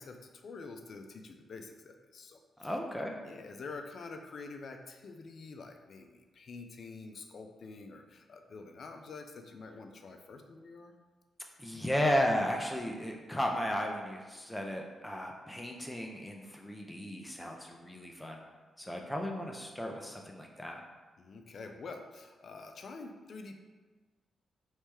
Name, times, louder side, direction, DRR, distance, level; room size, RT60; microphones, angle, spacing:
voice 1, 0.0-2.8 3.2-10.9 21.2-23.6, left 4 dB, 65° left, 5 dB, 0.4 m, -47 dB
voice 2, 2.6-3.1 11.6-18.4 18.8-20.8, equal, 5° left, 0 dB, 0.6 m, -34 dB
3.2 x 3.1 x 3.3 m, 1.3 s
supercardioid pair, 45°, 0 cm